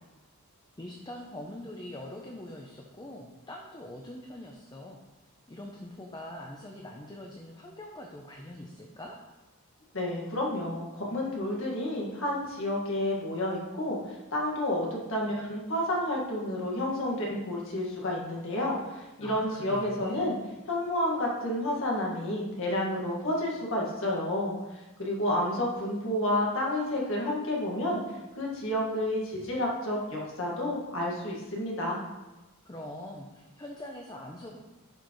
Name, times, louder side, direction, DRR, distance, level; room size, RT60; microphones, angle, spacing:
voice 1, 0.8-5.0 5.5-9.2 19.2-20.3 32.6-34.6, left 1 dB, 20° left, 1 dB, 0.6 m, -43 dB
voice 2, 9.9-20.4 20.7-28.0 28.4-32.0, left 1 dB, 60° left, -2 dB, 1.8 m, -30 dB
11.5 x 5.0 x 3.1 m, 1.1 s
head